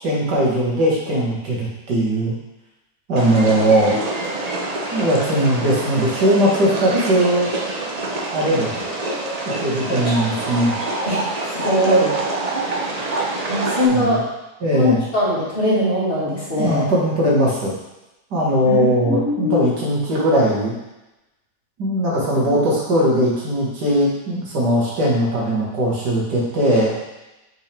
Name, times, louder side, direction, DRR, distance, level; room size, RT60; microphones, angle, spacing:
voice 1, 0.0-2.3 3.1-4.0 4.9-7.5 8.3-8.8 9.6-10.8 13.9-14.2 14.6-15.0 16.6-17.7 18.3-20.8 21.8-27.0, right 1 dB, 90° right, -5 dB, 2.1 m, -19 dB
sound 1, 3.2-13.9, right 2 dB, 40° right, 0.5 m, -26 dB
voice 2, 9.8-10.3 11.1-11.2 11.5-12.1 13.5-14.2 14.7-16.9 18.6-19.6, left 1 dB, 35° left, -9 dB, 2.0 m, -21 dB
5.9 x 4.6 x 3.4 m, 1.0 s
omnidirectional pair, 1.7 m